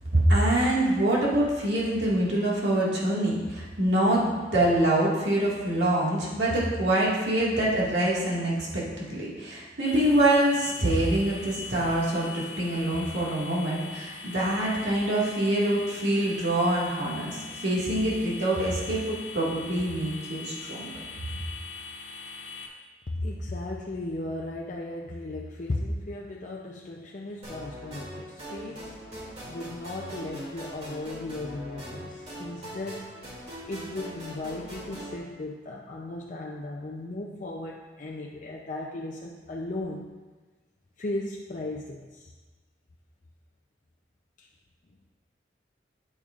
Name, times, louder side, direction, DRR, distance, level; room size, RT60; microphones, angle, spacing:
voice 1, 0.1-20.9, right 1 dB, 70° right, -6 dB, 2.0 m, -25 dB
sound 1, 9.8-22.7, left 4 dB, 80° left, 1.2 m, -41 dB
voice 2, 23.1-33.3 33.6-40.1 41.0-42.3 44.4-44.5, left 2 dB, 45° left, -2 dB, 0.6 m, -36 dB
sound 2, 27.4-35.2, equal, 35° right, 2.5 m, -41 dB
8.8 x 8.7 x 2.5 m, 1.3 s
head